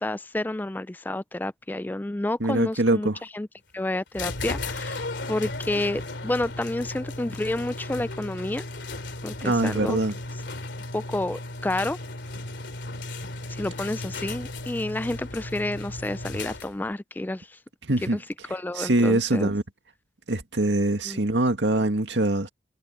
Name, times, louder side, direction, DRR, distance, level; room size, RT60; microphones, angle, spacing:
voice 1, 0.0-3.1 3.3-3.5 3.7-8.7 9.2-10.0 10.9-12.0 13.5-17.6 18.1-18.2 18.5-19.5 21.1-21.2, left 1 dB, 10° left, 0.3 m, -30 dB
voice 2, 2.4-3.2 9.4-10.2 17.8-18.2 18.8-19.6 20.3-22.5, right 2 dB, 80° right, 2.0 m, -23 dB
sound 1, 4.1-16.9, left 2 dB, 85° left, 2.8 m, -35 dB
head